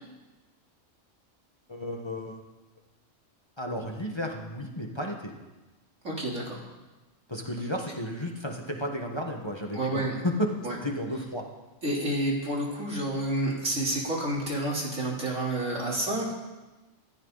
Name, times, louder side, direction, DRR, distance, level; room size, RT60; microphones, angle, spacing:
voice 1, 1.7-2.4 3.6-5.3 7.3-10.4 10.8-11.5, left 1 dB, 20° left, 1 dB, 1.6 m, -33 dB
voice 2, 6.0-6.6 9.7-10.1 10.6-10.8 11.8-16.3, right 1 dB, 70° right, -3 dB, 4.1 m, -29 dB
26.5 x 13.0 x 4.1 m, 1.1 s
omnidirectional pair, 1.3 m